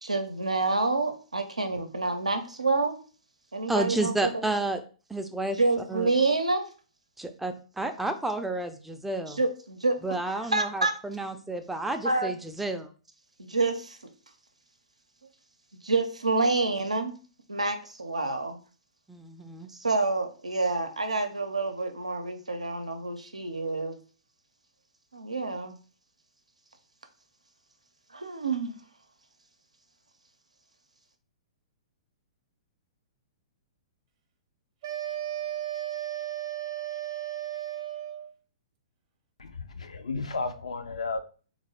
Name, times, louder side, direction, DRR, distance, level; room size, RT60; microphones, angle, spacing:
voice 1, 0.0-3.0 3.5-4.3 5.6-6.7 9.4-10.0 10.5-11.0 12.0-12.3 13.4-14.0 15.8-17.2 17.5-18.6 19.8-24.0 25.1-25.8 28.1-28.8, right 3 dB, 85° right, 0.6 m, -28 dB
voice 2, 3.7-4.8 5.1-5.6 5.9-6.1 7.2-9.4 10.0-12.9 19.1-19.7, right 2 dB, 5° right, 0.4 m, -31 dB
sound 1, 34.8-38.3, right 13 dB, 45° right, 0.7 m, -34 dB
voice 3, 39.4-41.2, left 3 dB, 75° left, 0.5 m, -33 dB
3.5 x 2.5 x 3.3 m
figure-of-eight pair, 110°, 3 cm